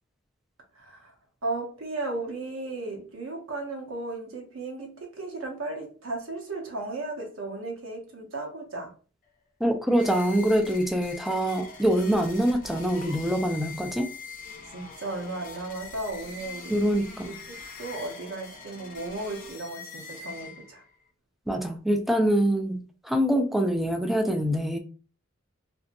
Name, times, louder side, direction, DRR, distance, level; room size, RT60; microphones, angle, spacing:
voice 1, 0.7-1.1 1.4-8.9 14.7-16.7 17.2-20.8, right 2 dB, 85° right, 0.9 m, -35 dB
voice 2, 9.6-14.1 16.7-17.4 21.5-24.8, equal, ahead, 0.3 m, -25 dB
sound 1, 9.9-20.9, left 5 dB, 40° left, 0.6 m, -43 dB
2.7 x 2.6 x 2.6 m
head